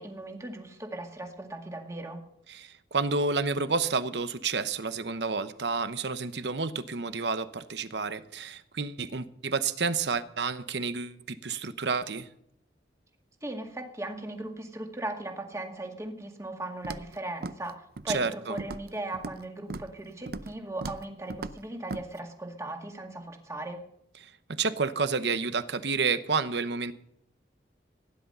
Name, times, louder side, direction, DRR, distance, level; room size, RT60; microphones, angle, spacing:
voice 1, 0.0-2.2 13.4-23.8, right 1 dB, 15° right, 3 dB, 2.0 m, -38 dB
voice 2, 2.5-12.3 18.1-18.6 24.6-26.9, right 4 dB, 75° right, 12 dB, 0.9 m, -30 dB
Walk footsteps, 16.8-17.1 17.4-17.7 18.0-18.3 18.6-19.4 19.7-19.9 20.3-20.5 20.8-21.0 21.3-21.6 21.9-22.0, right 3 dB, 60° right, 0.6 m, -37 dB
16.5 x 10.5 x 5.5 m, 0.73 s
head